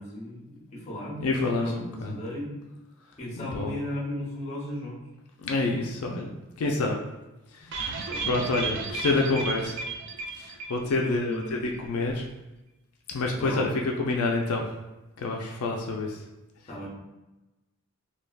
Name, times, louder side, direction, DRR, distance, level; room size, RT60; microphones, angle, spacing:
voice 1, 0.0-2.5 3.2-5.0 5.8-5.9 8.1-8.5 11.0-11.7 13.4-13.6 16.7-16.9, left 1 dB, 30° left, -4 dB, 0.6 m, -36 dB
voice 2, 1.2-2.2 3.4-3.7 5.4-6.3 6.6-7.0 7.5-9.8 10.4-12.3 13.1-14.7 15.2-16.2, left 3 dB, 80° left, 1 dB, 0.4 m, -28 dB
sound 1, 7.7-11.2 11.4-11.5 11.8-11.9, right 4 dB, 55° right, 0.3 m, -33 dB
3.3 x 2.2 x 2.3 m, 1.0 s
head